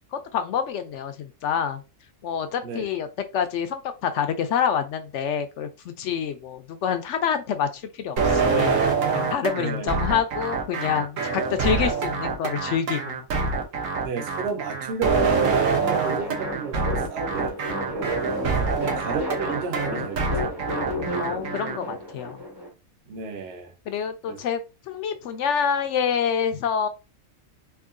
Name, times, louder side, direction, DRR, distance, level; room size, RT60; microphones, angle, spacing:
voice 1, 0.1-1.8 2.2-3.1 3.3-8.8 9.1-13.2 18.6-19.0 21.2-22.4 23.9-24.6 24.9-26.9, left 7 dB, 70° left, 0.8 m, -27 dB
sound 1, 8.2-21.8, right 4 dB, 70° right, 1.2 m, -25 dB
voice 2, 9.6-9.9 11.6-11.9 14.0-18.2 18.5-20.8 23.1-23.7 24.3-24.4, right 5 dB, 55° right, 0.9 m, -33 dB
sound 2, 15.2-22.7, equal, 20° right, 0.8 m, -32 dB
4.6 x 2.7 x 2.5 m
omnidirectional pair, 1.5 m